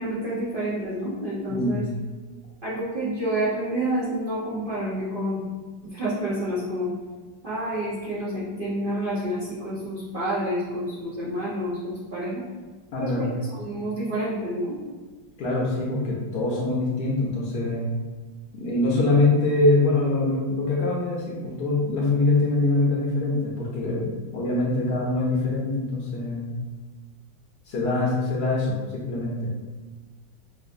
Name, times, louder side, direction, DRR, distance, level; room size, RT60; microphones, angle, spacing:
voice 1, 0.0-1.8 2.6-5.4 5.9-6.9 7.4-12.4 13.0-13.3 13.6-14.8, right 1 dB, 70° right, -10 dB, 0.5 m, -28 dB
voice 2, 1.5-1.8 12.9-13.3 15.4-17.9 18.5-26.5 27.7-29.5, left 2 dB, 65° left, -4 dB, 1.1 m, -24 dB
5.5 x 2.5 x 2.6 m, 1.3 s
omnidirectional pair, 2.2 m